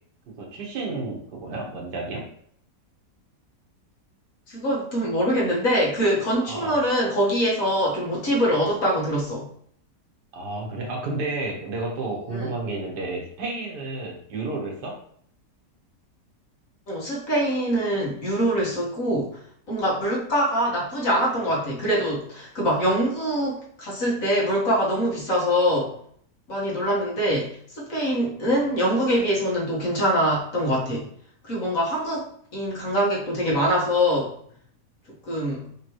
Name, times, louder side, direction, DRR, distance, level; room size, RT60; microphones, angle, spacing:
voice 1, 0.3-2.3 6.4-6.8 10.3-15.0, right 2 dB, 85° right, -1 dB, 1.8 m, -31 dB
voice 2, 4.5-9.5 12.3-12.5 16.9-19.4 19.7-25.9 26.5-31.1 31.4-34.3 35.2-35.7, equal, 55° left, -5 dB, 1.8 m, -24 dB
5.1 x 3.4 x 3.0 m, 0.63 s
omnidirectional pair, 1.8 m